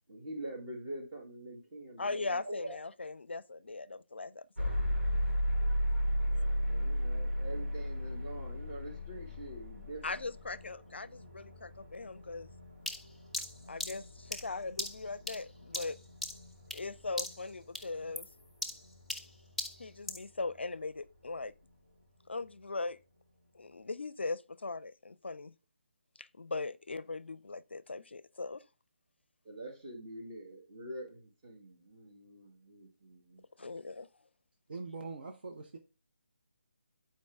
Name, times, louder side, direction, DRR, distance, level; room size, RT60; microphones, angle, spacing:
voice 1, 0.1-2.8 6.2-10.2 29.4-33.8, right 1 dB, 25° right, 2.1 m, -45 dB
voice 2, 2.0-4.8 10.0-12.5 13.7-16.0 16.7-18.3 19.8-21.5 22.3-23.0 23.5-25.5 26.2-28.6 33.6-34.1, left 3 dB, 70° left, 0.5 m, -39 dB
sound 1, 4.6-20.5, equal, 75° right, 3.1 m, -36 dB
sound 2, 12.9-16.9 17.2-17.5 17.7-20.3, left 1 dB, ahead, 0.4 m, -40 dB
voice 3, 34.7-35.8, right 4 dB, 55° right, 0.9 m, -42 dB
8.4 x 4.6 x 3.5 m
figure-of-eight pair, 150°, 6 cm